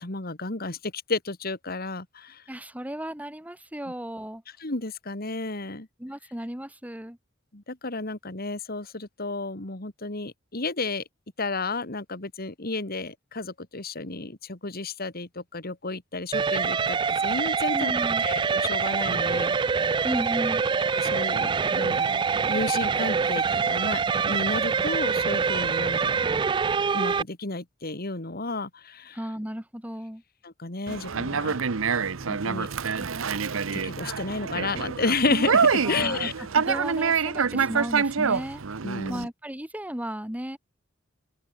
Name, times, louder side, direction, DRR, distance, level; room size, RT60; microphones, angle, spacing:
voice 1, 0.0-2.4 4.6-5.9 7.5-11.0 11.4-17.0 17.2-17.9 18.2-19.9 20.9-26.3 26.9-29.2 30.4-31.6 32.2-32.7 33.7-36.3 38.8-39.3, left 3 dB, 50° left, 2.6 m, -32 dB
voice 2, 2.5-4.4 6.0-7.2 17.7-18.2 20.0-20.7 29.1-30.2 35.8-36.3 36.5-38.6 39.1-40.6, equal, 10° right, 2.1 m, -34 dB
sound 1, 16.3-27.2, right 5 dB, 25° right, 0.3 m, -25 dB
Conversation, 30.9-39.2, right 5 dB, 90° right, 0.8 m, -26 dB
open air
head